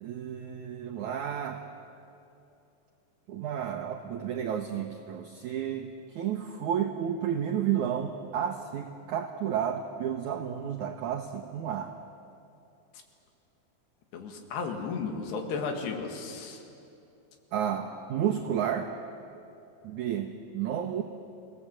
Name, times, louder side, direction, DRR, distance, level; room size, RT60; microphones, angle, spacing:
voice 1, 0.0-1.6 3.3-11.9 17.5-18.9 19.8-21.0, right 9 dB, 85° right, 4 dB, 1.7 m, -31 dB
voice 2, 14.1-16.6, left 5 dB, 85° left, 4 dB, 4.0 m, -34 dB
28.5 x 17.5 x 7.7 m, 2.7 s
omnidirectional pair, 4.7 m